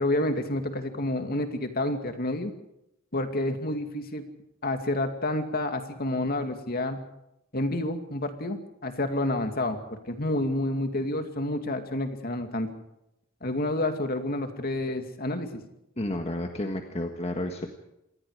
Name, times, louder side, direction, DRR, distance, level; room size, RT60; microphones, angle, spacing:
voice 1, 0.0-2.5 3.1-4.2 4.6-7.0 7.5-12.7 13.4-15.6, left 1 dB, 50° left, 6 dB, 2.5 m, -29 dB
voice 2, 16.0-17.7, left 1 dB, 30° left, 4 dB, 1.6 m, -31 dB
27.0 x 20.0 x 5.0 m, 0.85 s
head